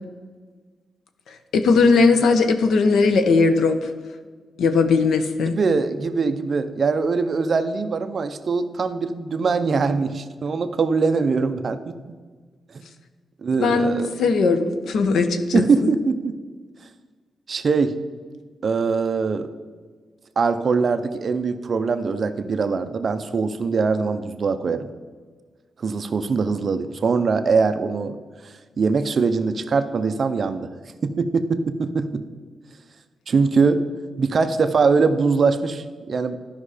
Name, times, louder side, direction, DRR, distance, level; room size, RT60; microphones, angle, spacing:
voice 1, 1.5-3.9 4.6-5.6 13.6-15.9, left 4 dB, 85° left, 8 dB, 0.9 m, -18 dB
voice 2, 5.5-12.0 12.7-12.9 13.4-14.1 15.5-16.3 17.5-17.9 18.6-19.5 20.4-24.9 25.8-28.2 28.8-30.7 31.0-32.2 33.3-33.8 34.2-36.4, right 4 dB, 40° right, 10 dB, 0.5 m, -22 dB
12.5 x 5.5 x 4.9 m, 1.5 s
wide cardioid pair, 180°, 0 cm